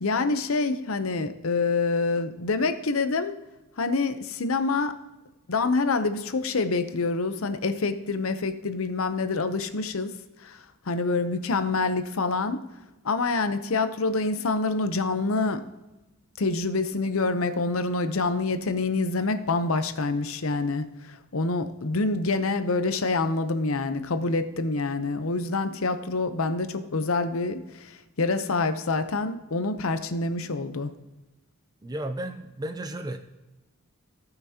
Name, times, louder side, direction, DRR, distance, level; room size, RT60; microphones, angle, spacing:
voice 1, 0.0-3.4 3.8-4.9 5.5-10.1 10.4-12.6 13.0-15.6 16.4-30.9, left 3 dB, 70° left, 10 dB, 0.8 m, -26 dB
voice 2, 31.8-33.2, right 1 dB, 20° right, 7 dB, 0.5 m, -33 dB
17.0 x 5.9 x 2.9 m, 1.1 s
head